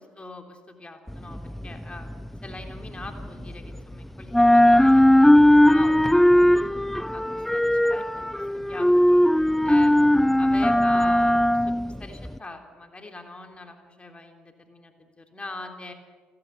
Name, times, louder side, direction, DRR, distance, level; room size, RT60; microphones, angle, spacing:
voice 1, 0.0-6.7 7.1-8.1 8.3-9.2 9.6-15.9, left 2 dB, 20° left, 4 dB, 3.6 m, -42 dB
sound 1, 1.1-3.9 4.2-12.4, left 1 dB, 5° left, 0.5 m, -19 dB
30.0 x 10.5 x 9.7 m, 1.5 s
figure-of-eight pair, 50°, 5 cm